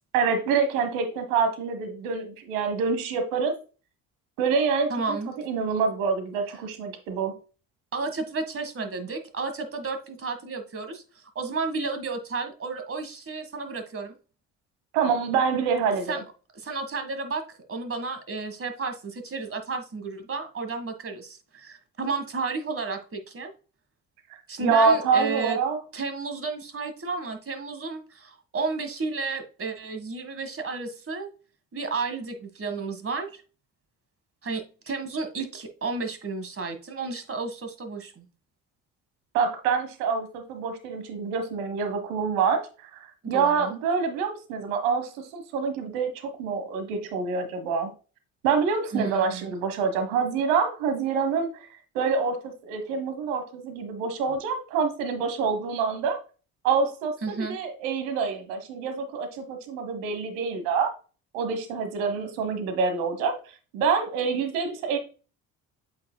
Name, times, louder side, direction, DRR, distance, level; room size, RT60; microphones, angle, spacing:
voice 1, 0.1-3.5 4.4-7.3 14.9-16.1 24.6-25.8 39.3-42.7 43.3-47.9 48.4-51.7 51.9-56.2 56.6-60.9 61.3-63.3 63.7-65.0, right 5 dB, 85° right, 1.4 m, -26 dB
voice 2, 4.9-5.3 7.9-11.0 11.4-14.1 16.1-16.2 16.6-17.4 17.7-23.5 24.5-25.6 25.9-31.3 31.7-33.4 34.4-38.3 43.2-43.7 48.9-49.5 57.2-57.6, right 4 dB, 35° right, 1.8 m, -32 dB
8.3 x 5.1 x 2.3 m
hypercardioid pair, 60°, 39 cm